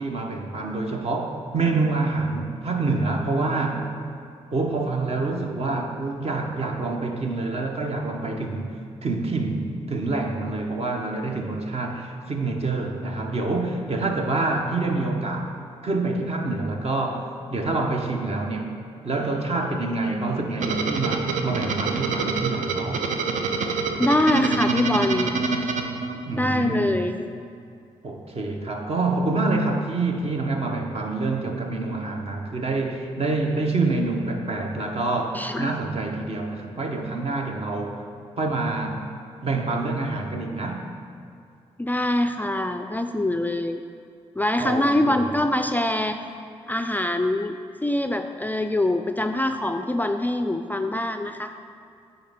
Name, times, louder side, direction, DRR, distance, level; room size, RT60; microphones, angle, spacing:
voice 1, 0.0-3.9 4.5-8.7 9.0-15.5 15.8-17.3 17.5-18.7 19.0-23.0 26.2-27.0 28.0-38.0 38.4-39.0 39.4-40.8 44.6-45.3, right 3 dB, 50° right, 2 dB, 0.9 m, -26 dB
sound 1, 20.6-26.6, right 4 dB, 70° right, 0.5 m, -26 dB
voice 2, 24.0-25.3 26.4-27.2 35.3-35.7 41.8-43.8 44.4-46.2 46.7-47.6 47.8-51.5, left 1 dB, 15° left, 6 dB, 0.3 m, -24 dB
9.1 x 4.1 x 3.6 m, 2.4 s
hypercardioid pair, 40°, 14 cm